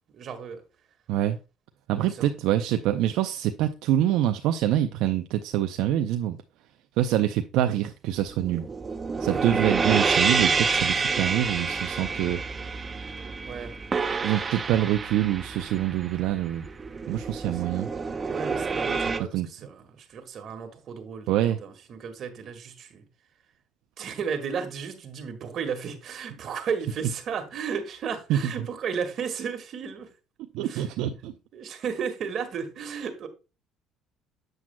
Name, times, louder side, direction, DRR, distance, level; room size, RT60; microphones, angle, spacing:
voice 1, 0.1-0.6 2.1-2.3 9.3-9.7 13.5-13.7 17.4-17.6 18.3-23.1 24.0-30.1 30.6-30.9 31.5-33.3, right 6 dB, 50° right, 1.7 m, -34 dB
voice 2, 1.9-6.4 7.0-8.6 9.2-12.4 14.2-16.6 17.1-17.9 19.3-19.5 21.3-21.6 28.3-28.5 30.5-31.3, right 12 dB, 75° right, 0.5 m, -25 dB
sound 1, 8.3-19.2, right 4 dB, 30° right, 0.6 m, -28 dB
7.8 x 7.3 x 2.2 m
cardioid pair, 100°, 0 cm